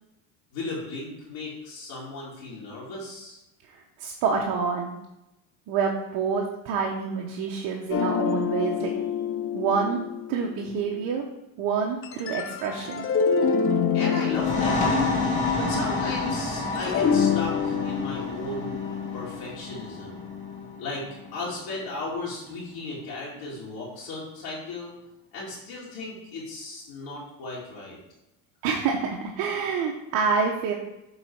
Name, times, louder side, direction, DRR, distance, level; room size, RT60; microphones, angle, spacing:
voice 1, 0.5-3.4 13.9-14.8 15.6-18.8 19.1-20.3 20.8-21.0 21.3-24.9 25.3-28.0, left 2 dB, 65° left, -6 dB, 2.5 m, -35 dB
voice 2, 3.7-4.9 5.7-8.9 9.5-10.0 10.3-11.2 11.6-13.1 28.6-30.7, right 5 dB, 65° right, 0 dB, 1.0 m, -27 dB
sound 1, 7.9-11.1 12.0-16.3 16.7-20.8, left 7 dB, 35° left, 0.6 m, -27 dB
sound 2, 14.2-21.6, left 2 dB, 20° left, 2.2 m, -30 dB
8.2 x 4.0 x 4.7 m, 0.91 s
supercardioid pair, 105°, 39 cm